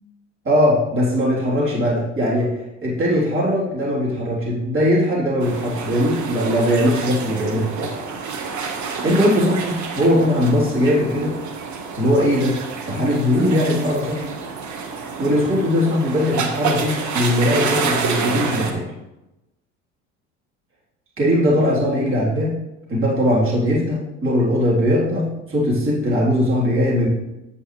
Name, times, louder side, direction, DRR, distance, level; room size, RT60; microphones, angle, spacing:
voice 1, 0.4-2.5 2.8-7.9 9.0-11.4 11.9-12.6 12.9-14.2 15.2-18.8 21.2-22.6 22.9-27.1, equal, 35° right, -6 dB, 3.9 m, -20 dB
sound 1, 5.4-18.7, right 5 dB, 50° right, 1.8 m, -28 dB
9.8 x 8.7 x 3.4 m, 0.95 s
hypercardioid pair, 75°, 38 cm